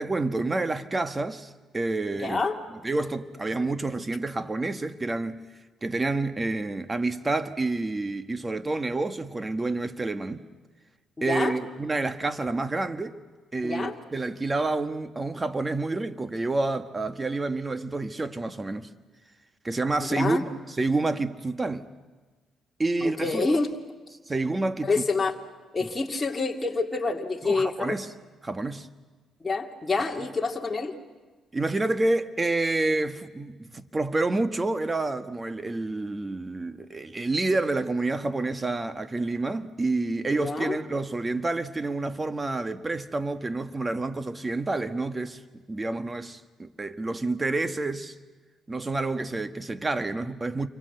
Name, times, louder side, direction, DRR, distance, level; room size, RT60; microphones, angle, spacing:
voice 1, 0.0-2.4 2.8-5.4 5.8-10.4 11.2-13.2 13.5-18.9 19.6-21.9 22.8-23.4 24.3-25.0 25.8-25.9 27.4-28.1 28.4-28.9 31.5-48.1 48.7-50.7, right 2 dB, 20° right, 1.5 m, -28 dB
voice 2, 2.2-2.6 11.3-11.5 13.6-13.9 20.1-20.4 23.0-23.7 24.8-25.4 25.7-27.9 29.4-30.9 40.3-40.8, left 3 dB, 25° left, 2.4 m, -27 dB
29.0 x 24.5 x 8.0 m
cardioid pair, 90°, 0 cm